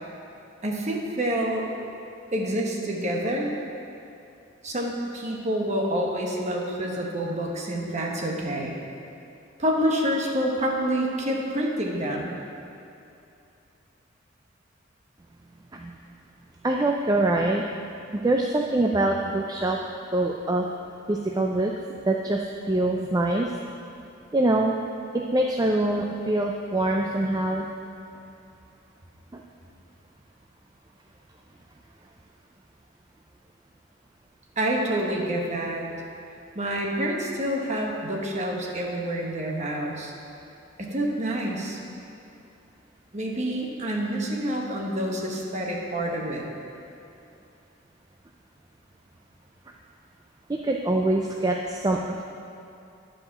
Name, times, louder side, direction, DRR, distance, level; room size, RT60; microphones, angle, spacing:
voice 1, 0.6-1.6 2.3-3.5 4.6-8.8 9.6-12.3 34.6-35.9 36.5-40.1 40.8-41.8 43.1-46.5, right 1 dB, 35° right, -1 dB, 1.3 m, -27 dB
voice 2, 16.6-17.6 18.1-19.8 20.1-20.6 21.1-21.7 22.0-22.4 22.7-23.5 24.3-24.7 25.3-27.7 29.3-29.4 50.5-52.2, right 2 dB, 20° right, 0 dB, 0.4 m, -24 dB
11.0 x 5.0 x 7.2 m, 2.7 s
head